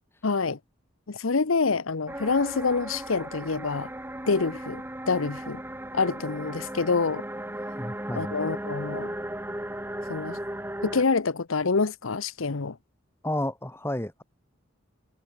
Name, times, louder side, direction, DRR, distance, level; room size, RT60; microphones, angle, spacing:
voice 1, 0.2-0.6 1.1-3.9 4.3-5.6 5.9-7.2 8.1-9.1 10.1-10.4 10.8-12.8, left 4 dB, 80° left, 0.9 m, -26 dB
sound 1, 2.1-11.0, right 1 dB, 10° right, 1.6 m, -36 dB
voice 2, 7.8-8.3 13.2-14.2, left 1 dB, 10° left, 1.5 m, -31 dB
head